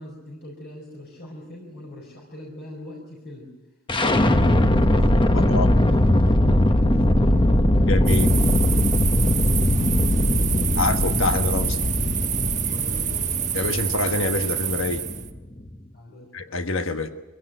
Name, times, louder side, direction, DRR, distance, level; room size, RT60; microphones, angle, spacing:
voice 1, 0.0-3.5 4.0-4.9 5.3-5.9 6.6-8.5 9.1-9.5 9.7-10.8 12.6-13.4 15.9-16.3, left 1 dB, 55° left, -1 dB, 4.5 m, -41 dB
sound 1, 3.9-15.8, left 1 dB, 25° left, 1.2 m, -20 dB
voice 2, 5.3-5.7 7.9-8.3 10.8-11.8 13.5-15.0 16.3-17.1, left 3 dB, 75° left, 8 dB, 1.4 m, -25 dB
sound 2, 8.1-15.3, right 10 dB, 40° right, 1.3 m, -28 dB
23.5 x 16.5 x 9.1 m, 1.1 s
head